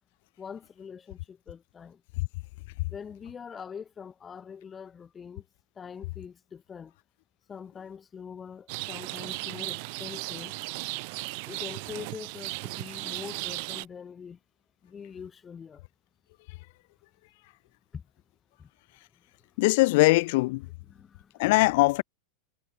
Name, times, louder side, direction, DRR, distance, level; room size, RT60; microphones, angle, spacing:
voice 1, 0.4-2.0 2.9-5.5 5.8-6.9 7.5-10.5 11.5-14.4 14.8-15.8 17.9-18.0 18.6-18.7 20.9-21.5, left 7 dB, 20° left, 7.7 m, -43 dB
Rain, 8.7-13.9, right 32 dB, 45° right, 1.1 m, -36 dB
voice 2, 19.6-20.7 21.4-22.0, left 22 dB, 50° left, 1.1 m, -21 dB
figure-of-eight pair, 90°, 0 cm